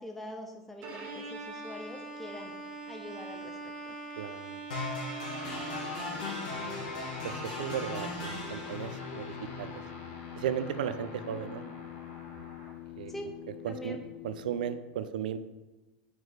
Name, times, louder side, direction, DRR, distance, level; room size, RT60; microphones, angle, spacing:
voice 1, 0.0-2.6 2.9-3.5 3.8-4.0 11.3-11.7 13.1-13.3 13.7-14.0, left 1 dB, 5° left, 2 dB, 0.6 m, -44 dB
Bowed string instrument, 0.8-6.7, right 3 dB, 50° right, 1.3 m, -42 dB
voice 2, 4.2-4.6 6.6-6.8 7.2-9.3 9.6-9.8 10.4-11.6 13.0-13.1 13.6-14.0 14.2-15.4, right 9 dB, 80° right, 11 dB, 0.4 m, -35 dB
sound 1, 4.7-12.7, left 2 dB, 85° left, 2.1 m, -39 dB
sound 2, 5.4-14.8, left 13 dB, 50° left, 0.5 m, -46 dB
4.8 x 4.6 x 4.7 m, 1.1 s
hypercardioid pair, 105°, 4 cm